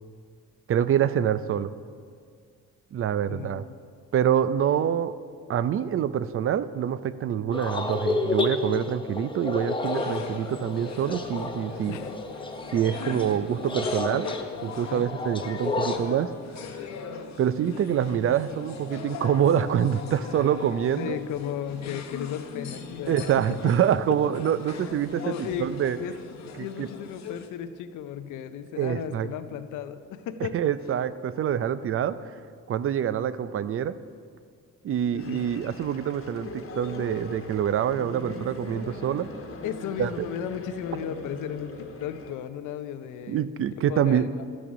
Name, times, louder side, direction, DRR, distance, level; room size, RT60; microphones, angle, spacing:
voice 1, 0.7-1.7 2.9-3.6 4.1-5.1 5.5-12.0 12.7-14.3 14.6-16.3 17.4-21.2 23.1-26.0 26.6-26.9 28.8-29.3 30.5-32.4 32.7-33.9 34.8-39.3 40.0-40.3 43.3-44.3, right 9 dB, 45° right, 15 dB, 0.5 m, -26 dB
voice 2, 3.3-3.8 11.9-12.2 13.3-13.4 14.9-15.1 21.0-23.3 25.1-26.1 26.6-30.6 35.1-35.8 39.6-43.5 43.8-44.5, left 9 dB, 85° left, 11 dB, 0.6 m, -35 dB
sound 1, 7.5-16.0, left 3 dB, 15° left, 0.8 m, -31 dB
sound 2, 9.8-27.5, left 5 dB, 60° left, 1.0 m, -40 dB
sound 3, 35.2-42.3, left 2 dB, 45° left, 1.3 m, -40 dB
12.5 x 6.3 x 5.9 m, 2.2 s
cardioid pair, 90°, 30 cm